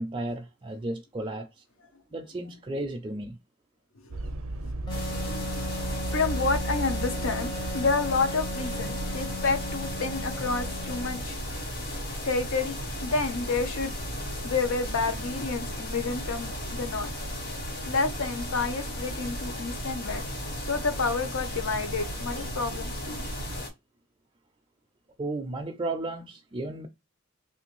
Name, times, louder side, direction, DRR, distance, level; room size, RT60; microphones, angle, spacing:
voice 1, 0.0-1.5 2.1-3.4 25.2-26.9, right 2 dB, 25° right, 0.4 m, -33 dB
voice 2, 4.0-4.7 6.1-11.4 12.2-14.1 14.4-17.1 17.8-20.2 20.5-23.2, left 4 dB, 75° left, 0.8 m, -30 dB
sound 1, 4.1-23.6, right 1 dB, 75° right, 0.5 m, -37 dB
sound 2, 4.9-23.7, left 1 dB, 45° left, 1.4 m, -37 dB
Wind instrument woodwind instrument, 4.9-11.3, left 1 dB, 20° left, 0.7 m, -37 dB
3.3 x 2.5 x 2.9 m
head